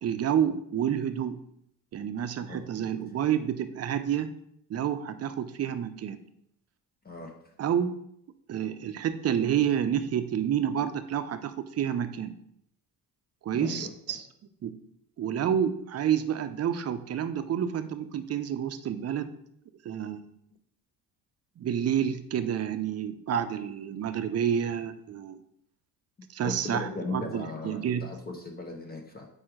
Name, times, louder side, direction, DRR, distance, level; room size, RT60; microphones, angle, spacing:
voice 1, 0.0-1.4 1.9-4.3 4.7-6.2 7.6-8.0 8.5-12.4 13.4-14.2 14.6-14.8 15.2-19.3 19.8-20.2 21.6-25.4 26.3-28.1, right 9 dB, 40° right, 9 dB, 0.6 m, -29 dB
voice 2, 2.5-3.0 7.0-7.3 13.5-14.2 26.4-29.3, left 2 dB, 25° left, 2 dB, 0.9 m, -38 dB
4.8 x 4.4 x 4.9 m, 0.72 s
cardioid pair, 95°, 38 cm